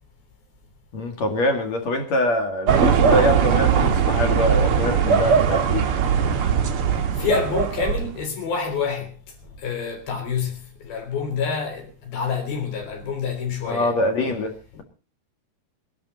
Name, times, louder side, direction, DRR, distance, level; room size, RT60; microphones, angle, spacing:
voice 1, 0.9-5.9 13.7-14.8, left 1 dB, 50° left, 2.9 m, -24 dB
sound 1, 2.7-8.2, right 7 dB, 70° right, 1.3 m, -20 dB
voice 2, 6.9-9.1 9.4-13.9 14.7-14.8, left 6 dB, 65° left, 5.4 m, -28 dB
23.0 x 12.0 x 4.0 m
omnidirectional pair, 4.6 m